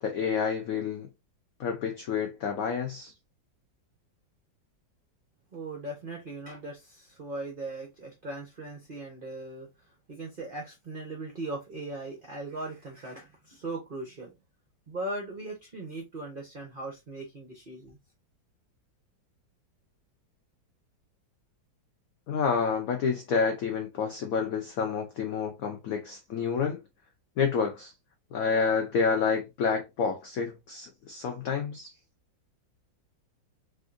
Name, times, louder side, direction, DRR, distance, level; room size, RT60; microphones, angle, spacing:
voice 1, 0.0-1.1 1.6-3.1 22.3-26.8 27.4-27.9 28.3-31.9, left 6 dB, 85° left, 0.7 m, -29 dB
voice 2, 5.5-9.7 10.1-14.3 14.9-18.0, right 2 dB, 70° right, 0.5 m, -39 dB
3.4 x 2.5 x 2.4 m
omnidirectional pair, 2.1 m